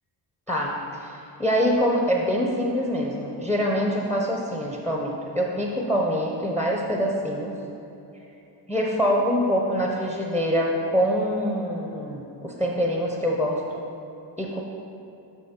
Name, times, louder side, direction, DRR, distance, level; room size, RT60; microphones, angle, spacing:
voice 1, 0.5-7.5 8.7-13.6 14.4-14.6, equal, 5° left, -1 dB, 0.7 m, -25 dB
7.0 x 6.1 x 4.4 m, 2.9 s
cardioid pair, 100°, 45 cm